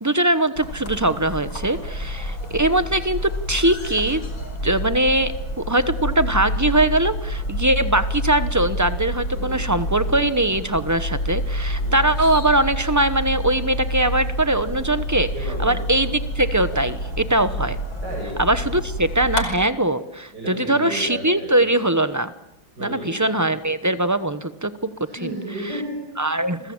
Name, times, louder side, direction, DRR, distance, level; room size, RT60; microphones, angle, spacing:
voice 1, 0.0-4.2 4.6-15.3 15.6-17.8 18.4-22.3 22.8-24.9 25.2-25.3 26.2-26.7, right 1 dB, 15° right, 12 dB, 0.6 m, -21 dB
sound 1, 0.6-19.5, equal, 75° left, 6.1 m, -28 dB
voice 2, 9.3-9.6 11.8-12.0 15.3-15.8 18.0-18.3 20.3-21.6 22.8-23.2 25.0-26.0, right 1 dB, 55° right, -1 dB, 8.2 m, -33 dB
29.0 x 22.0 x 8.9 m, 0.85 s
omnidirectional pair, 2.2 m